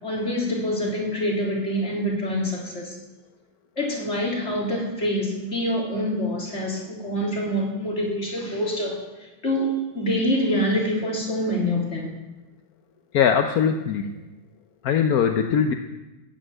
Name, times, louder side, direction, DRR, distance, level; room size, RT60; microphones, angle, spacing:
voice 1, 0.0-3.0 3.8-12.1, equal, 30° left, -3 dB, 3.9 m, -26 dB
voice 2, 13.1-14.1 14.8-15.7, left 7 dB, 60° left, 5 dB, 1.1 m, -21 dB
14.0 x 8.9 x 9.1 m, 1.1 s
omnidirectional pair, 2.2 m